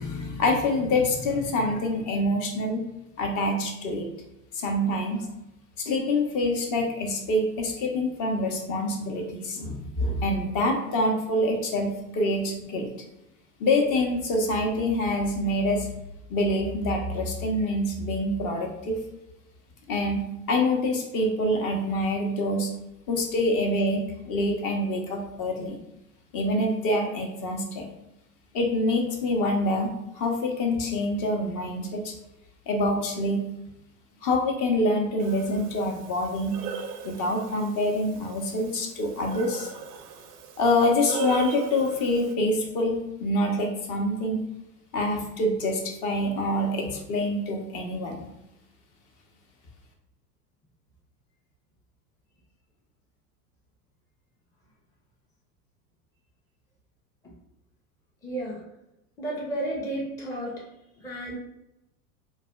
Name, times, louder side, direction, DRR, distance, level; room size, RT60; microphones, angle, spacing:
voice 1, 0.0-2.8 3.2-4.1 4.5-5.3 5.8-12.9 13.6-15.9 16.3-19.0 19.9-22.7 23.1-25.8 26.3-27.9 28.5-32.1 32.7-33.4 34.2-36.6 37.0-39.7 40.6-44.4 44.9-48.3, left 1 dB, 40° left, 2 dB, 0.7 m, -26 dB
Breathing, 35.2-42.3, right 6 dB, 85° right, 0.6 m, -38 dB
voice 2, 58.2-58.6 59.2-60.7 61.0-61.4, right 1 dB, 10° left, -3 dB, 0.5 m, -32 dB
4.0 x 2.2 x 2.2 m, 0.87 s
hypercardioid pair, 90°, 46 cm